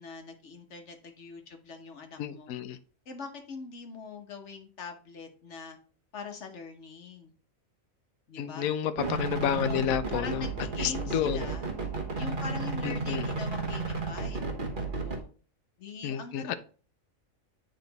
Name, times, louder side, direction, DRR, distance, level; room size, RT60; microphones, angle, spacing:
voice 1, 0.0-2.5 3.1-5.8 6.1-7.3 8.3-8.7 9.5-9.8 10.1-11.7 12.1-14.4 15.0-15.3 15.8-16.5, left 4 dB, 60° left, 5 dB, 1.4 m, -42 dB
voice 2, 2.2-2.8 8.4-10.4 10.8-11.5 12.8-13.2 16.0-16.5, left 9 dB, 85° left, 11 dB, 1.0 m, -30 dB
sound 1, 9.0-15.2, right 3 dB, 40° right, 1.3 m, -33 dB
9.1 x 3.9 x 4.0 m, 0.40 s
omnidirectional pair, 1.4 m